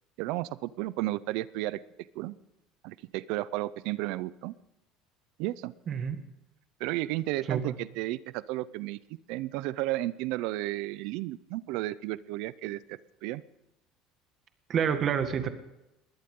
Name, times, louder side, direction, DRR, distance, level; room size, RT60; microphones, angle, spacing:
voice 1, 0.2-1.8 2.1-2.3 2.8-4.5 5.4-5.7 6.8-9.0 9.3-13.4, right 17 dB, 70° right, 18 dB, 0.6 m, -33 dB
voice 2, 5.9-6.2 7.5-7.7 14.7-15.5, right 8 dB, 35° right, 8 dB, 1.9 m, -28 dB
21.5 x 16.5 x 3.8 m, 0.91 s
cardioid pair, 155°, 0 cm